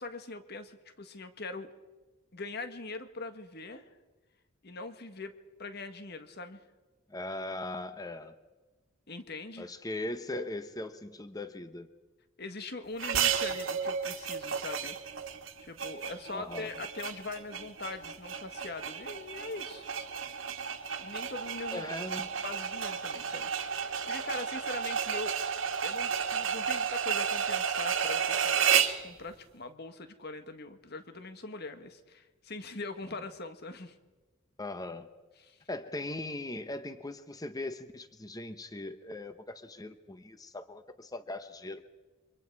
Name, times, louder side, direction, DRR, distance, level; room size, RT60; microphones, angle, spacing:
voice 1, 0.0-1.7 2.3-3.9 4.6-5.3 5.6-6.6 9.1-9.7 12.4-14.9 15.6-19.9 21.0-21.8 22.4-25.4 25.8-28.7 29.0-33.9 35.4-35.6, left 3 dB, 55° left, 8 dB, 1.7 m, -42 dB
voice 2, 7.1-8.3 9.6-11.9 16.3-16.7 21.7-22.3 33.0-33.1 34.6-35.1 35.7-41.8, left 2 dB, 20° left, 10 dB, 1.0 m, -39 dB
sound 1, 13.0-29.0, right 7 dB, 75° right, 1.8 m, -32 dB
28.5 x 25.0 x 4.7 m, 1.3 s
head